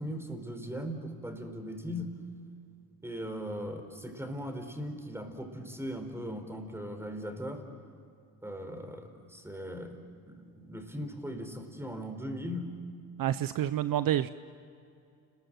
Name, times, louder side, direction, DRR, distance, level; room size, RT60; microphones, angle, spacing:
voice 1, 0.0-2.1 3.0-7.6 8.4-12.7, equal, 5° right, 6 dB, 4.7 m, -39 dB
voice 2, 13.2-14.3, right 11 dB, 60° right, 13 dB, 0.7 m, -28 dB
30.0 x 21.5 x 7.7 m, 2.5 s
cardioid pair, 85°, 39 cm